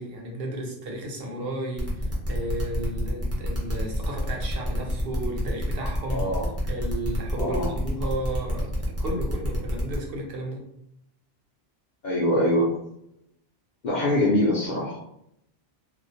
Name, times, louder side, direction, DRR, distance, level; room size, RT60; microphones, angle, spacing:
voice 1, 0.0-6.2 6.6-8.7 9.0-10.6, right 1 dB, 65° right, 0 dB, 0.8 m, -33 dB
sound 1, 1.8-10.0, equal, 20° right, 0.5 m, -29 dB
voice 2, 6.1-6.5 7.4-7.7 12.0-12.8 13.8-15.0, left 1 dB, 55° left, -5 dB, 0.6 m, -23 dB
2.4 x 2.0 x 2.6 m, 0.77 s
omnidirectional pair, 1.1 m